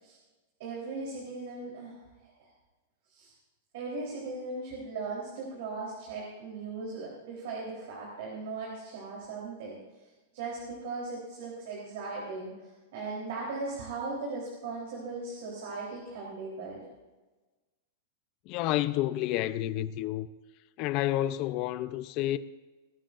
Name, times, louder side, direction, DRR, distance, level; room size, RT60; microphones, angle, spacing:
voice 1, 0.6-1.9 2.2-2.5 3.1-3.3 3.7-9.8 10.3-16.9, right 3 dB, 60° right, 3.8 m, -38 dB
voice 2, 18.5-20.3 20.8-22.4, left 14 dB, 35° left, 0.6 m, -29 dB
20.5 x 13.0 x 2.6 m
supercardioid pair, 165°, 0 cm